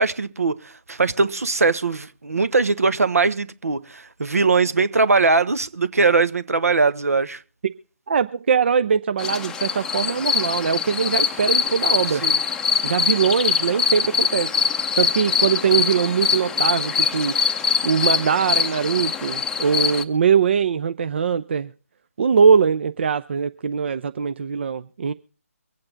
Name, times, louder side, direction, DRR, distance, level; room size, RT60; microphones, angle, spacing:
voice 1, 0.0-7.4 12.1-12.4, right 4 dB, 70° right, 1.2 m, -21 dB
voice 2, 8.1-12.2 12.8-14.5 15.0-17.4 17.8-21.7 22.2-25.1, right 6 dB, 45° right, 0.6 m, -21 dB
sound 1, 9.2-20.0, left 7 dB, 5° left, 0.7 m, -23 dB
24.0 x 8.7 x 3.9 m
figure-of-eight pair, 145°, 8 cm